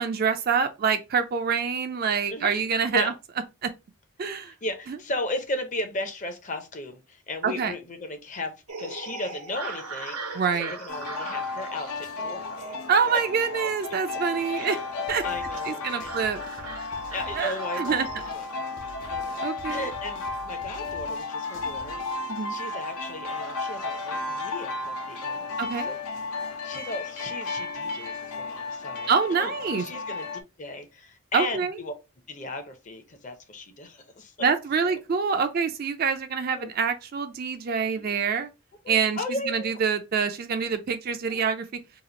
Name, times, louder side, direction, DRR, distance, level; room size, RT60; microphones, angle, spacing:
voice 1, 0.0-3.1 3.6-3.7 4.2-4.5 4.9-5.0 7.4-7.7 10.3-10.7 12.9-14.8 15.1-15.2 15.7-16.4 17.4-18.1 19.4-19.8 22.3-22.6 25.6-25.9 29.1-29.8 31.3-31.7 34.4-38.5 38.9-39.2 39.5-41.7, right 6 dB, 40° right, 0.3 m, -26 dB
voice 2, 2.3-2.6 2.9-3.1 4.2-12.6 13.5-13.7 14.5-14.9 15.2-16.5 17.1-18.5 19.1-22.0 22.5-26.0 26.6-30.3 30.6-31.9 32.3-34.3 34.8-34.9 36.5-36.7 37.9-38.2 38.8-39.8 41.3-41.4, left 2 dB, 35° left, 0.6 m, -36 dB
sound 1, 8.7-18.3, right 4 dB, 85° right, 0.9 m, -41 dB
sound 2, 10.9-30.4, left 3 dB, 80° left, 0.6 m, -34 dB
sound 3, 15.1-22.4, right 1 dB, 55° left, 1.0 m, -48 dB
2.9 x 2.4 x 3.8 m
head